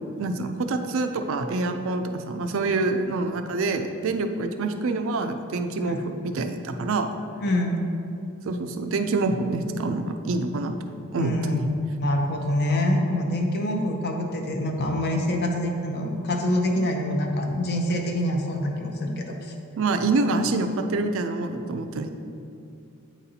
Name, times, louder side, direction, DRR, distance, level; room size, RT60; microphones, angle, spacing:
voice 1, 0.2-7.1 8.5-10.8 11.1-11.6 19.8-22.1, right 3 dB, 65° right, 7 dB, 0.4 m, -26 dB
voice 2, 7.4-7.8 11.2-19.5, left 1 dB, 50° left, 2 dB, 0.6 m, -25 dB
8.5 x 4.1 x 2.7 m, 2.6 s
head